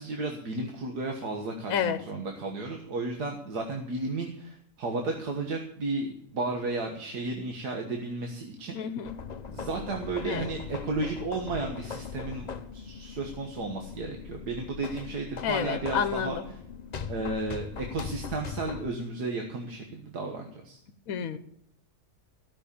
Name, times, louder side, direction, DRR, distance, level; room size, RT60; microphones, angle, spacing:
voice 1, 0.0-8.8 9.5-16.4 17.1-20.8, right 3 dB, 80° right, 2 dB, 1.9 m, -33 dB
voice 2, 1.7-2.0 8.7-9.1 10.2-10.5 15.4-16.4 21.1-21.4, left 8 dB, 65° left, 10 dB, 1.2 m, -29 dB
sound 1, 9.0-18.9, left 6 dB, 45° left, 0.5 m, -40 dB
15.5 x 6.4 x 8.4 m, 0.70 s
omnidirectional pair, 1.7 m